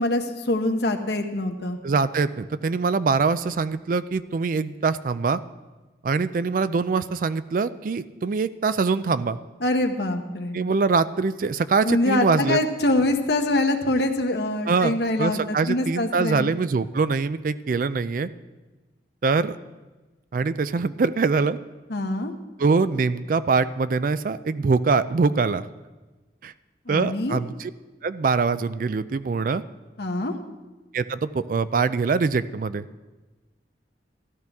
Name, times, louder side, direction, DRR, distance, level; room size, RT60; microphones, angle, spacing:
voice 1, 0.0-1.8 9.6-10.6 11.8-16.5 21.9-22.3 26.9-27.4 30.0-30.4, left 1 dB, 65° left, 4 dB, 1.0 m, -24 dB
voice 2, 1.8-5.4 6.0-9.4 10.5-12.6 14.7-14.9 15.2-18.3 19.2-19.6 20.3-21.6 22.6-25.7 26.4-26.5 26.9-27.7 28.0-29.6 30.9-32.9, right 4 dB, 50° right, 14 dB, 0.4 m, -23 dB
13.5 x 12.0 x 3.5 m, 1.2 s
head